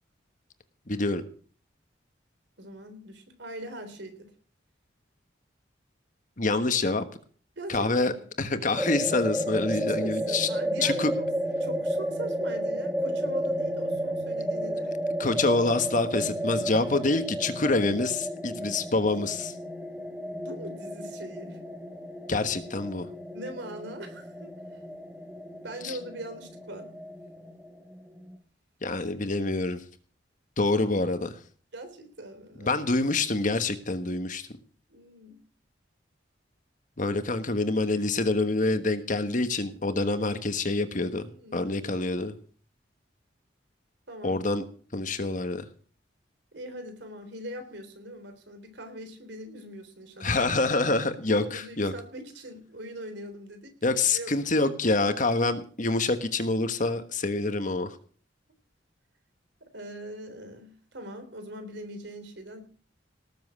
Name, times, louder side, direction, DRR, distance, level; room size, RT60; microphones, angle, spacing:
voice 1, 0.9-1.2 6.4-7.0 7.7-8.1 8.4-10.5 10.8-11.1 15.2-19.5 22.3-23.1 25.8-26.0 28.8-29.8 30.6-31.3 32.6-34.5 37.0-41.2 41.5-42.3 44.2-44.6 44.9-45.6 50.2-51.9 53.8-58.0, left 3 dB, 45° left, 10 dB, 1.3 m, -26 dB
voice 2, 2.6-4.3 7.6-8.1 9.7-11.1 11.6-15.0 20.4-21.6 23.3-24.8 25.6-26.9 31.7-32.8 34.9-35.4 41.2-41.8 44.1-44.4 46.5-50.4 51.3-53.8 54.1-54.3 57.2-57.3 59.6-62.6, right 1 dB, 70° right, 7 dB, 3.6 m, -41 dB
sound 1, 8.8-28.4, equal, 5° right, 1.2 m, -32 dB
18.5 x 7.5 x 6.3 m, 0.44 s
head